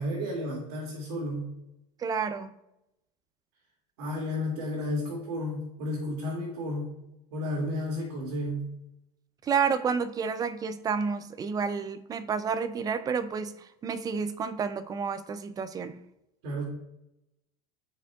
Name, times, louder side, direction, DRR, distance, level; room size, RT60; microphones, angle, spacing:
voice 1, 0.0-1.5 4.0-6.9 7.3-8.7 16.4-16.7, left 1 dB, 80° right, 2.4 m, -32 dB
voice 2, 2.0-2.5 9.4-16.0, right 6 dB, 20° right, 0.3 m, -30 dB
13.0 x 5.1 x 2.3 m
supercardioid pair, 140°, 20 cm